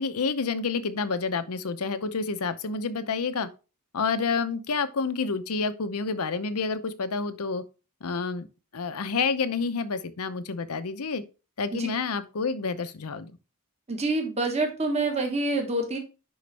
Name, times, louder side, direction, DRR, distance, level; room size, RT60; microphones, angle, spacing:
voice 1, 0.0-3.5 3.9-7.6 8.0-8.5 8.7-11.2 11.6-13.3, left 4 dB, 80° left, 0.7 m, -29 dB
voice 2, 13.9-16.0, right 2 dB, 30° right, 1.4 m, -27 dB
10.5 x 3.9 x 3.3 m
head